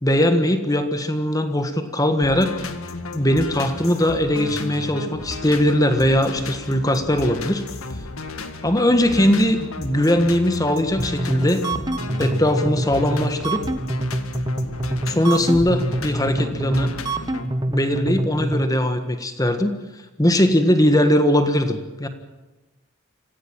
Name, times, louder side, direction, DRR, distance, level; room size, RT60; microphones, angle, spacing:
voice 1, 0.0-2.7 3.1-7.6 8.6-11.6 12.2-13.6 15.1-17.0 17.7-19.8 20.2-22.1, left 1 dB, 15° left, 8 dB, 1.6 m, -20 dB
sound 1, 2.2-17.5, left 2 dB, 80° left, 1.9 m, -33 dB
sound 2, 11.0-18.7, right 1 dB, 20° right, 1.0 m, -26 dB
25.5 x 15.5 x 9.0 m, 1.1 s
head